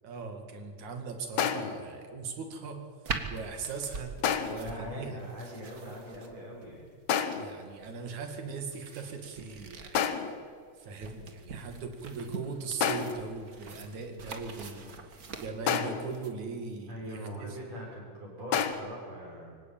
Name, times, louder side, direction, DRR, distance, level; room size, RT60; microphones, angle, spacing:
voice 1, 0.0-2.8 3.3-4.2 4.5-5.2 7.3-10.0 10.8-17.6, right 4 dB, 75° right, 6 dB, 3.6 m, -39 dB
sound 1, 1.4-1.9 4.2-4.7 7.1-7.6 9.9-10.5 12.8-13.3 15.7-16.2 18.5-18.7, left 8 dB, 70° left, 2.5 m, -29 dB
sound 2, 3.0-16.3, right 4 dB, 35° right, 1.8 m, -44 dB
voice 2, 4.6-6.9 11.0-11.2 14.8-15.0 16.9-19.5, equal, 60° right, -3 dB, 8.4 m, -42 dB
24.5 x 17.0 x 9.0 m, 2.1 s
omnidirectional pair, 3.4 m